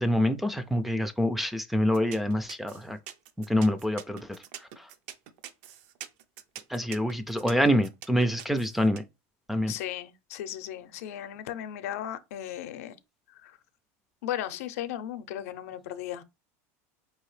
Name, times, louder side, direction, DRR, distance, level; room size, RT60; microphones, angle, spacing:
voice 1, 0.0-3.0 3.4-4.4 4.8-4.9 6.7-9.0 9.5-9.7, equal, ahead, 0.3 m, -26 dB
sound 1, 1.9-9.0, right 10 dB, 65° right, 0.5 m, -44 dB
voice 2, 9.7-13.0 13.3-13.6 14.2-16.2, left 11 dB, 85° left, 0.6 m, -36 dB
4.7 x 2.8 x 3.1 m
supercardioid pair, 160°, 8 cm